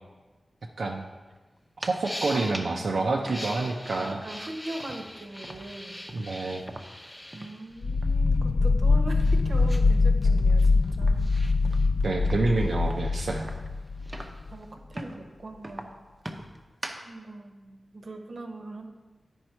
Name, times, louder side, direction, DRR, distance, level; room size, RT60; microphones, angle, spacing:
sound 1, 0.8-0.9 1.1-1.4 1.9-2.7 3.2-8.4 8.9-14.7, left 1 dB, 15° left, 0.7 m, -43 dB
sound 2, 1.6-2.1 2.5-2.8 3.2-4.5 4.8-7.7 7.9-8.2 8.6-9.9 10.3-14.5 14.9-15.3 15.6-17.1, right 1 dB, 30° right, 0.7 m, -42 dB
voice 1, 1.8-4.2 6.1-6.6 12.0-13.5, right 3 dB, 80° right, 0 dB, 0.6 m, -28 dB
voice 2, 2.3-3.5 3.9-6.0 7.3-11.3 14.5-15.9 17.1-18.9, right 2 dB, 65° right, 3 dB, 0.9 m, -41 dB
sound 3, 7.8-14.5, left 3 dB, 65° left, 0.3 m, -23 dB
9.5 x 5.3 x 4.4 m, 1.3 s
wide cardioid pair, 80°, 0 cm